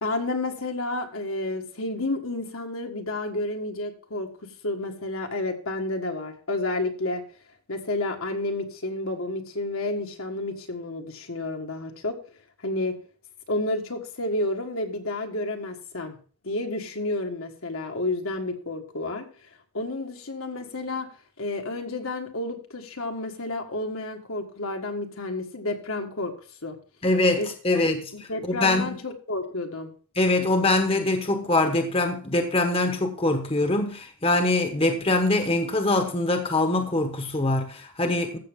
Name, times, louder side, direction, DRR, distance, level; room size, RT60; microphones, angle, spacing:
voice 1, 0.0-4.3 4.6-7.2 7.7-12.2 12.6-13.0 13.5-16.2 16.4-19.3 19.7-21.1 21.4-26.3 26.6-26.8 27.4-29.9, left 2 dB, 75° left, 1.7 m, -30 dB
voice 2, 27.0-29.0 30.2-38.4, left 2 dB, 25° left, 1.0 m, -23 dB
14.5 x 6.5 x 3.6 m
head